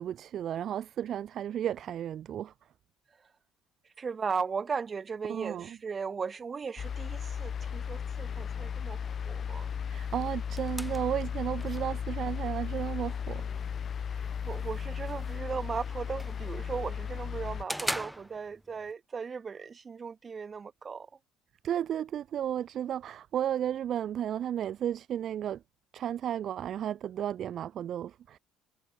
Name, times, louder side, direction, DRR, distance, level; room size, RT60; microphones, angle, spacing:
voice 1, 0.0-2.5 5.3-5.8 9.8-13.7 21.6-25.6 25.9-28.4, right 10 dB, 50° right, 0.5 m, -33 dB
voice 2, 4.0-9.7 14.1-21.1, right 5 dB, 30° right, 2.1 m, -37 dB
sound 1, 6.8-17.6, left 7 dB, 40° left, 1.4 m, -35 dB
sound 2, 9.9-18.9, equal, ahead, 0.6 m, -43 dB
cardioid pair, 110°, 0 cm